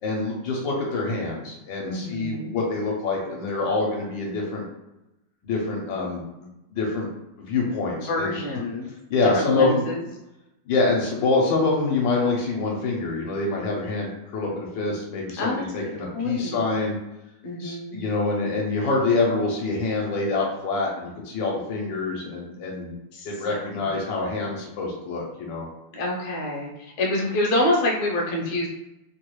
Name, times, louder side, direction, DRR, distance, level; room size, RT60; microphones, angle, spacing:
voice 1, 0.0-4.6 5.4-7.1 7.4-8.4 9.1-9.9 10.7-17.0 17.6-22.9 23.2-25.7, left 3 dB, 80° left, -2 dB, 1.4 m, -26 dB
voice 2, 1.9-2.6 8.0-8.9 9.2-10.0 15.4-15.6 16.1-16.6 17.4-18.0 23.1-23.9 25.9-28.7, left 1 dB, 65° left, -2 dB, 1.2 m, -27 dB
3.3 x 2.3 x 3.0 m, 0.92 s
omnidirectional pair, 2.0 m